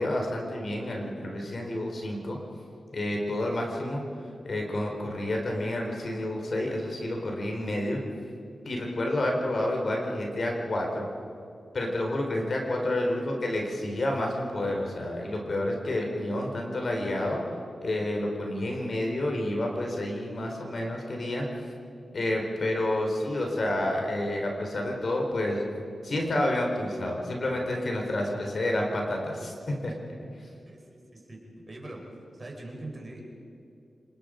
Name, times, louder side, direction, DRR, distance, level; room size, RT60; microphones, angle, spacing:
voice 1, 0.0-2.4 2.9-4.0 4.4-8.0 8.6-11.1 11.7-17.4 17.8-21.5 22.1-25.6 26.0-29.5 29.8-29.9, left 1 dB, 55° left, 1 dB, 4.1 m, -29 dB
voice 2, 30.4-31.4 31.7-32.0 32.3-33.3, right 2 dB, 35° right, 0 dB, 5.2 m, -42 dB
28.0 x 20.0 x 5.2 m, 2.6 s
cardioid pair, 75°, 0 cm